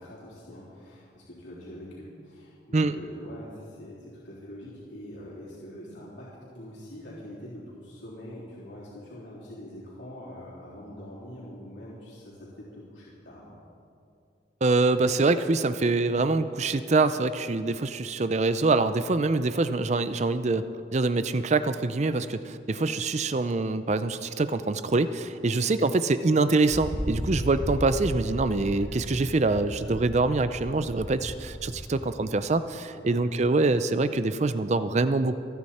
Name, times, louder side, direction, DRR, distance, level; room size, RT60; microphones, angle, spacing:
voice 1, 0.0-13.5 25.3-25.5 32.9-33.2, equal, 70° left, -8 dB, 3.5 m, -44 dB
voice 2, 14.6-35.4, right 3 dB, 35° right, 12 dB, 0.5 m, -25 dB
Wind, 26.6-32.2, equal, 10° left, 1.3 m, -35 dB
27.5 x 9.7 x 4.3 m, 2.5 s
head